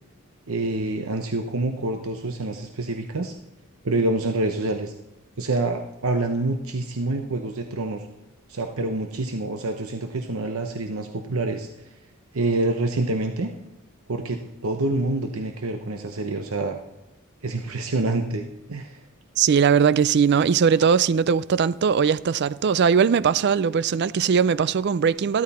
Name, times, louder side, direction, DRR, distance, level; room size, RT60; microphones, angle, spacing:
voice 1, 0.5-3.3 3.8-4.9 5.4-8.1 8.5-11.9 12.3-13.5 14.1-16.8 17.4-19.0, right 2 dB, 75° right, 0.9 m, -27 dB
voice 2, 19.4-25.4, right 6 dB, 50° right, 0.4 m, -20 dB
13.5 x 13.0 x 4.2 m
head